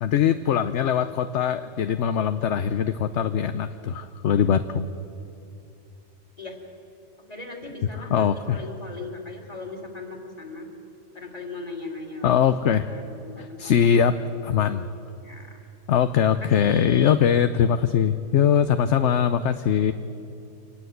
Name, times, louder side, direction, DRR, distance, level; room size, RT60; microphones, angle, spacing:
voice 1, 0.0-4.9 8.0-8.6 12.2-12.9 13.4-14.2 14.4-14.8 15.9-19.9, left 8 dB, 60° left, 10 dB, 1.0 m, -22 dB
voice 2, 7.3-10.7 11.1-12.4 12.9-14.0 15.2-15.7 16.4-17.2, left 2 dB, 30° left, 1 dB, 3.4 m, -38 dB
26.5 x 19.5 x 8.0 m, 2.8 s
omnidirectional pair, 1.4 m